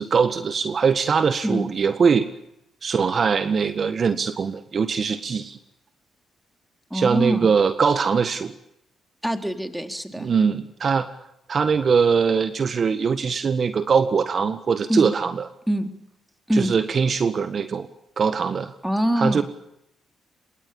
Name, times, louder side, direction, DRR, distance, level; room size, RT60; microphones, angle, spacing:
voice 1, 0.0-2.3 2.8-5.6 6.9-8.5 10.2-11.1 11.5-15.5 16.5-17.9 18.2-18.7 19.2-19.4, right 6 dB, 55° right, 10 dB, 1.7 m, -22 dB
voice 2, 6.9-7.5 9.2-10.3 14.9-15.1 15.7-15.9 16.5-16.7 18.8-19.4, equal, 5° right, 6 dB, 4.0 m, -24 dB
27.0 x 22.5 x 7.2 m, 0.79 s
supercardioid pair, 50°, 0 cm